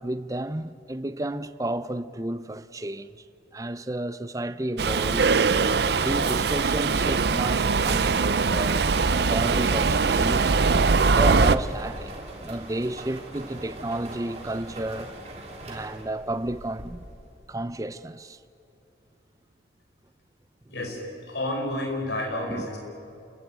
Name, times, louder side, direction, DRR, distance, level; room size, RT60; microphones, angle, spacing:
voice 1, 0.0-3.2 3.5-5.3 5.9-10.5 11.0-12.1 12.4-15.1 15.6-17.0 17.5-18.4 22.5-22.7, right 1 dB, 20° right, 0.6 m, -32 dB
Subway metro underground, 4.8-11.6, right 4 dB, 65° right, 0.6 m, -22 dB
sound 1, 8.0-17.4, right 1 dB, 35° right, 3.1 m, -42 dB
voice 2, 21.3-22.8, left 1 dB, 75° left, 5.3 m, -30 dB
29.0 x 15.0 x 9.2 m
head